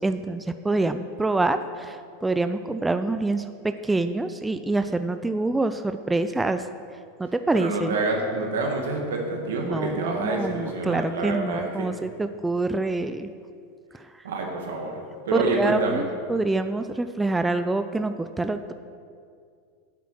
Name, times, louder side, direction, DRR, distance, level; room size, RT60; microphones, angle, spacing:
voice 1, 0.0-6.7 7.2-7.9 9.6-13.3 13.9-14.2 15.3-18.7, right 2 dB, 10° right, 9 dB, 0.4 m, -26 dB
voice 2, 7.5-11.9 14.2-16.1, right 3 dB, 80° right, 1 dB, 2.0 m, -27 dB
8.3 x 8.3 x 6.1 m, 2.3 s
hypercardioid pair, 105°, 0 cm